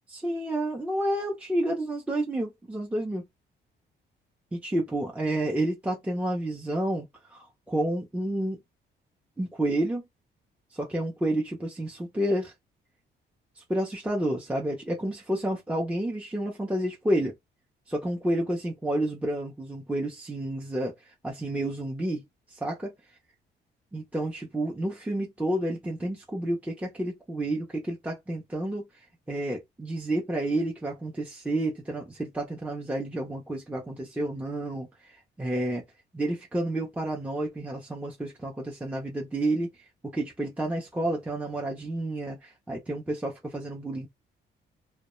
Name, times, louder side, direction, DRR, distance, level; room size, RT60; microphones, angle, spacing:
voice 1, 0.1-3.2 4.5-8.6 9.4-10.0 10.7-12.5 13.6-17.3 17.9-20.9 21.2-22.2 22.5-22.9 23.9-28.9 29.3-35.8 36.1-39.7 40.0-44.1, right 1 dB, 5° right, 0.6 m, -30 dB
2.2 x 2.0 x 3.0 m
cardioid pair, 90°, 20 cm